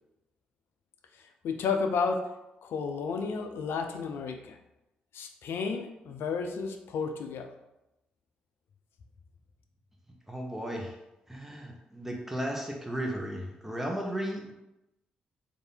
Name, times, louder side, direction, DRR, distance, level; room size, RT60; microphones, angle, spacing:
voice 1, 1.2-2.3 2.6-4.6 5.1-7.5, left 5 dB, 65° left, 5 dB, 0.5 m, -32 dB
voice 2, 10.3-10.9 11.3-14.5, right 1 dB, 5° right, 0 dB, 1.1 m, -35 dB
3.3 x 2.7 x 4.3 m, 0.94 s
hypercardioid pair, 40°, 4 cm